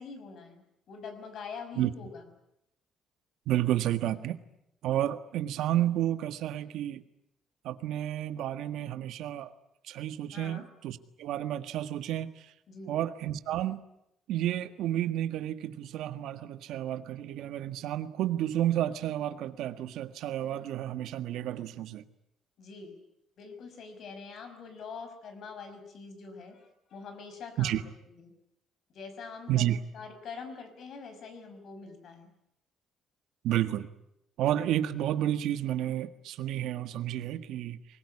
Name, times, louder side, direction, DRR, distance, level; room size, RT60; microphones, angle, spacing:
voice 1, 0.0-2.2 10.3-10.7 12.7-13.0 22.6-23.0 23.4-28.3 28.9-29.7 29.9-32.3, left 5 dB, 50° left, 8 dB, 5.6 m, -44 dB
voice 2, 3.5-4.4 4.8-7.0 7.6-9.5 9.8-12.5 12.9-13.8 14.3-22.0 27.6-27.8 29.5-29.8 33.4-33.9 34.4-37.8, right 12 dB, 75° right, 11 dB, 1.6 m, -31 dB
24.0 x 21.5 x 9.8 m, 0.79 s
cardioid pair, 155°, 0 cm